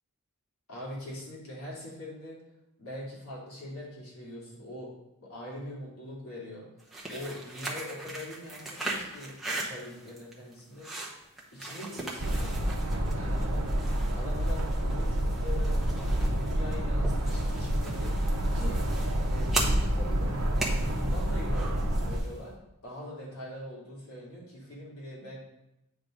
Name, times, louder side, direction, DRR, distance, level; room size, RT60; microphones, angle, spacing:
voice 1, 0.7-2.4 2.8-4.9 5.2-10.9 11.5-13.9 14.1-15.8 16.3-18.1 18.5-18.8 19.3-20.4 20.9-22.6 22.8-25.4, left 1 dB, 85° left, -5 dB, 2.8 m, -42 dB
sound 1, 6.8-22.4, right 2 dB, ahead, 0.9 m, -39 dB
sound 2, 12.2-22.2, right 1 dB, 65° right, 0.9 m, -28 dB
9.0 x 3.5 x 5.0 m, 0.91 s
head